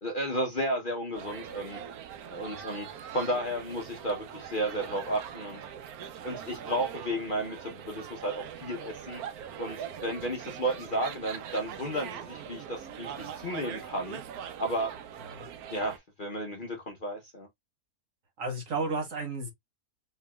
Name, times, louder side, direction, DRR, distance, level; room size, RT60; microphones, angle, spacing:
voice 1, 0.0-1.8 2.3-2.9 3.1-5.6 6.2-9.2 9.6-14.2 14.6-14.9 15.7-17.5, right 1 dB, 40° left, 0.9 m, -33 dB
sound 1, 1.1-16.0, right 8 dB, 75° right, 1.1 m, -42 dB
voice 2, 18.4-19.5, right 3 dB, 55° right, 1.5 m, -33 dB
4.5 x 2.8 x 2.2 m
omnidirectional pair, 1.7 m